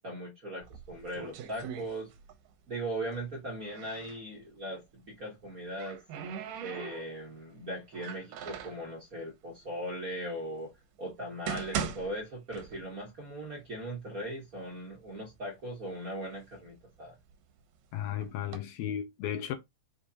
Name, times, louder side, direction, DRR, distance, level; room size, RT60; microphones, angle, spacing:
voice 1, 0.0-2.1 2.7-6.0 6.6-10.7 11.0-17.2, right 1 dB, 45° right, 1.1 m, -39 dB
sound 1, 0.6-2.5 2.8-4.2 5.3-7.4 7.9-8.9 9.6-9.7 10.4-10.5 11.1-13.1 13.4-13.5 14.2-14.3 14.7-15.4 15.9-17.6 18.2-18.6, right 8 dB, 75° right, 1.9 m, -40 dB
voice 2, 17.9-19.6, left 10 dB, 80° left, 1.7 m, -34 dB
5.0 x 3.4 x 2.8 m
omnidirectional pair, 3.4 m